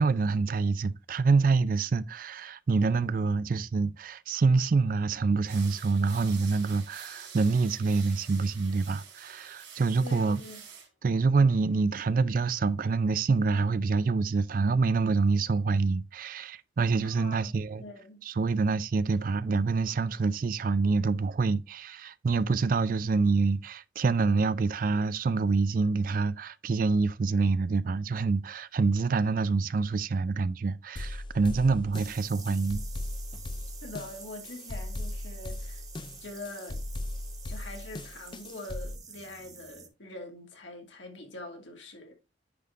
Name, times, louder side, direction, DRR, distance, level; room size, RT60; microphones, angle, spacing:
voice 1, 0.0-10.4 11.0-17.8 18.2-32.8, right 4 dB, 45° right, 0.4 m, -26 dB
sound 1, 5.4-10.9, right 7 dB, 75° right, 3.3 m, -47 dB
voice 2, 10.0-10.6 17.1-17.5 17.8-18.2 33.8-35.8 36.2-36.8 37.5-42.1, left 2 dB, 80° left, 2.3 m, -43 dB
sound 2, 31.0-39.0, left 1 dB, 25° left, 0.4 m, -38 dB
sound 3, 31.9-39.9, right 6 dB, 20° right, 0.8 m, -48 dB
9.6 x 3.6 x 3.6 m
head